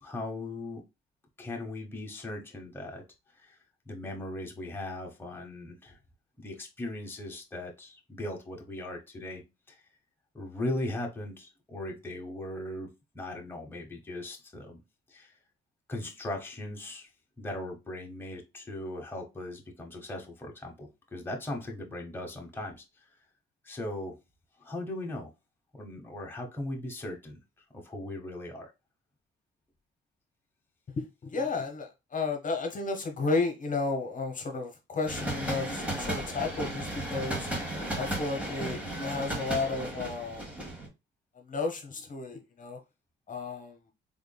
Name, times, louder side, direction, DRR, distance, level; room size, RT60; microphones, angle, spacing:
voice 1, 0.0-0.8 1.4-3.0 3.3-3.6 3.9-6.0 6.4-9.4 9.7-9.8 10.3-12.9 13.1-14.8 15.1-15.4 15.9-17.1 17.4-23.0 23.6-24.2 24.6-25.3 25.7-27.4 27.7-28.7, left 1 dB, 10° left, 1.0 m, -38 dB
voice 2, 31.0-37.5 38.0-40.4 41.4-42.8 43.3-43.8, left 3 dB, 40° left, 1.0 m, -33 dB
sound 1, 35.1-40.9, right 1 dB, 5° right, 1.7 m, -35 dB
3.7 x 3.6 x 2.3 m
cardioid pair, 90°, 20 cm